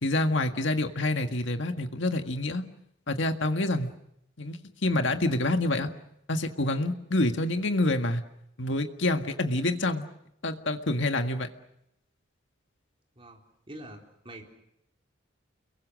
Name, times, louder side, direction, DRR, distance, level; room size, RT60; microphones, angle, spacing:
voice 1, 0.0-2.6 3.1-3.9 4.4-5.9 6.3-8.2 8.6-10.1 10.4-11.5, left 2 dB, 65° left, 6 dB, 1.8 m, -27 dB
voice 2, 13.7-14.4, right 1 dB, 25° right, 1 dB, 4.0 m, -45 dB
29.5 x 22.5 x 6.4 m, 0.79 s
head